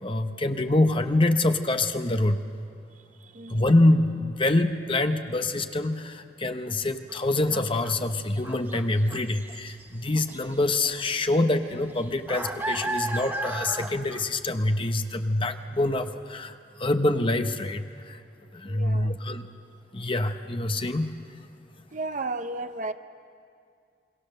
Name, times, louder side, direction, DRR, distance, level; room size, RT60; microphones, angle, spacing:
voice 1, 0.0-2.4 3.5-18.2 18.5-19.5 19.9-21.1, left 2 dB, 30° left, 7 dB, 0.9 m, -25 dB
voice 2, 3.2-3.7 18.6-19.1 21.9-22.9, right 3 dB, 40° right, 9 dB, 0.8 m, -34 dB
sound 1, 7.1-7.2 7.5-9.9 10.2-10.5 10.8-10.9 11.3-14.4, right 2 dB, 10° right, 1.1 m, -34 dB
27.5 x 22.5 x 6.7 m, 2.3 s
head